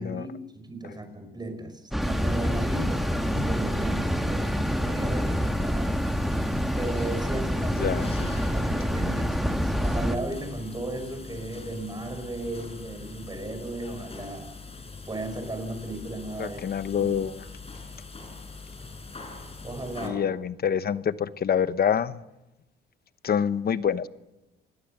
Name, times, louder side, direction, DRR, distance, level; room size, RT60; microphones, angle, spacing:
voice 1, 0.0-5.9 6.8-8.0 8.2-14.5 15.1-16.6 17.0-17.2 19.6-20.2, right 2 dB, 20° right, 7 dB, 5.7 m, -35 dB
sound 1, 1.9-10.2, equal, ahead, 1.8 m, -27 dB
sound 2, 2.0-20.1, left 3 dB, 30° left, 5.5 m, -42 dB
voice 2, 7.8-8.3 16.4-17.4 20.0-22.2 23.2-24.1, left 8 dB, 50° left, 14 dB, 1.0 m, -26 dB
27.5 x 21.0 x 6.8 m, 0.99 s
cardioid pair, 90°, 20 cm